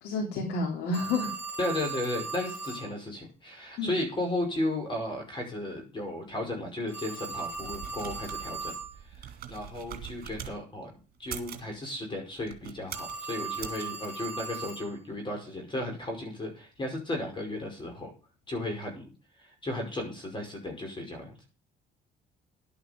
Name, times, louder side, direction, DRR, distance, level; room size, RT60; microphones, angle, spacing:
voice 1, 0.0-1.3 3.8-4.0, left 3 dB, 80° left, 1 dB, 3.3 m, -30 dB
Telephone, 0.9-2.9 6.9-8.9 12.9-14.9, right 5 dB, 10° left, 6.5 m, -38 dB
voice 2, 1.6-8.8 9.1-10.9 11.2-18.1 18.5-19.1 19.4-21.4, left 1 dB, 30° left, 2 dB, 5.3 m, -34 dB
sound 1, 7.5-10.6 11.2-11.7 12.4-13.2 13.6-13.8, right 9 dB, 60° right, 2.5 m, -42 dB
12.0 x 8.8 x 5.2 m, 0.35 s
cardioid pair, 110°, 17 cm